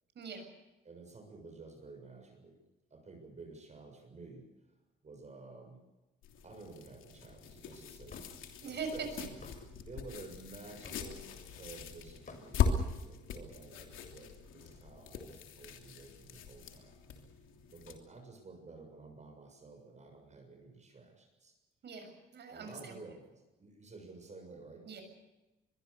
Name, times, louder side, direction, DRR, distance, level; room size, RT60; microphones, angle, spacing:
voice 1, 0.2-0.5 8.6-8.9 21.8-23.0 24.9-25.0, right 5 dB, 60° right, 5 dB, 7.0 m, -43 dB
voice 2, 0.8-2.6 2.9-4.5 5.0-5.8 6.4-8.4 8.7-17.0 17.7-21.5 22.5-24.9, right 3 dB, 35° right, 3 dB, 6.9 m, -52 dB
sound 1, 6.2-18.0, left 6 dB, 80° left, 3.1 m, -40 dB
Hammer / Wood, 8.1-8.3 9.4-9.6 10.8-11.1 12.3-12.5, left 4 dB, 40° left, 5.6 m, -50 dB
23.0 x 22.5 x 6.8 m, 1.1 s
cardioid pair, 90°, 20 cm